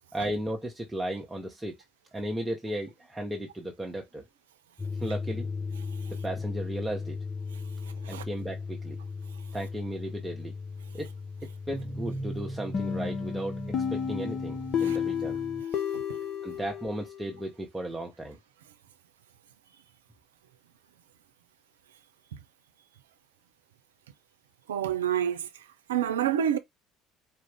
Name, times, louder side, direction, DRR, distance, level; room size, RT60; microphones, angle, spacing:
voice 1, 0.1-1.7 2.1-4.2 4.9-5.5 6.1-7.2 8.1-9.0 9.5-10.5 10.9-11.1 11.7-15.4 16.4-18.4, right 1 dB, 15° right, 0.9 m, -35 dB
sound 1, 4.8-15.6, left 3 dB, 25° left, 0.7 m, -37 dB
sound 2, 12.7-17.4, left 7 dB, 45° left, 1.0 m, -32 dB
voice 2, 24.7-25.5 25.9-26.6, right 10 dB, 85° right, 0.4 m, -27 dB
4.4 x 2.5 x 3.4 m
hypercardioid pair, 60°, 0 cm